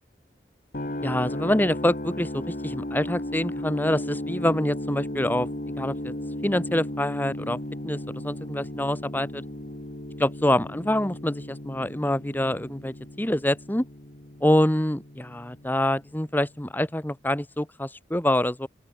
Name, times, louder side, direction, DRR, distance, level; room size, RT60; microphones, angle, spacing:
sound 1, 0.7-16.7, left 1 dB, 50° left, 2.4 m, -35 dB
voice 1, 1.0-5.5 5.8-6.1 6.4-7.6 7.8-8.0 8.2-9.4 10.2-13.8 14.4-18.7, left 1 dB, 10° left, 1.2 m, -26 dB
open air
head